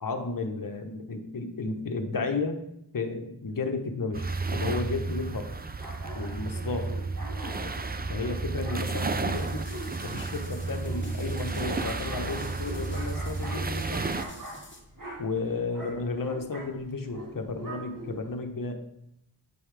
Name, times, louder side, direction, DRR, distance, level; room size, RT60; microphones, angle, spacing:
voice 1, 0.0-2.6 2.9-5.5 6.2-7.0 7.4-7.8 8.1-9.6 10.0-14.0 15.2-18.8, left 3 dB, 55° left, 5 dB, 1.1 m, -33 dB
sound 1, 4.1-14.3, right 3 dB, 25° right, 0.5 m, -32 dB
sound 2, 5.8-18.4, right 1 dB, 50° right, 1.8 m, -44 dB
sound 3, 9.3-14.8, left 1 dB, 25° left, 1.8 m, -47 dB
9.3 x 5.5 x 3.4 m, 0.80 s
wide cardioid pair, 85°, 41 cm